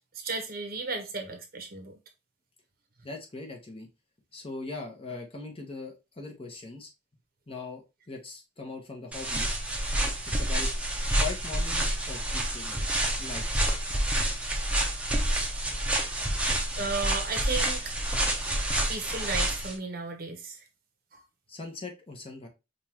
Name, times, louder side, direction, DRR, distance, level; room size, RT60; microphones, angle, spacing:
voice 1, 0.1-1.9 16.8-17.8 18.9-20.6, right 3 dB, 55° right, 1.0 m, -34 dB
voice 2, 3.0-3.9 4.3-6.9 7.5-9.5 10.3-10.7 11.2-13.7 16.2-16.4 16.7-16.9 21.5-22.5, left 3 dB, 30° left, 1.0 m, -40 dB
sound 1, 9.1-19.7, right 1 dB, 5° right, 0.8 m, -28 dB
5.3 x 2.5 x 2.9 m
head